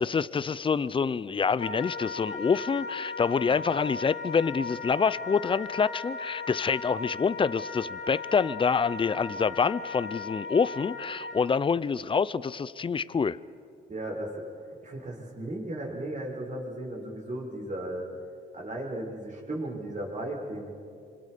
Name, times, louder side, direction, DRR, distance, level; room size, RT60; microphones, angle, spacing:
voice 1, 0.0-13.4, left 5 dB, 25° left, 18 dB, 0.6 m, -27 dB
Wind instrument woodwind instrument, 1.6-11.5, left 4 dB, 70° left, 2.6 m, -37 dB
voice 2, 13.9-14.5 14.8-18.1 18.5-20.7, right 1 dB, 40° right, -1 dB, 6.5 m, -35 dB
26.5 x 26.0 x 5.1 m, 2.5 s
cardioid pair, 90°, 20 cm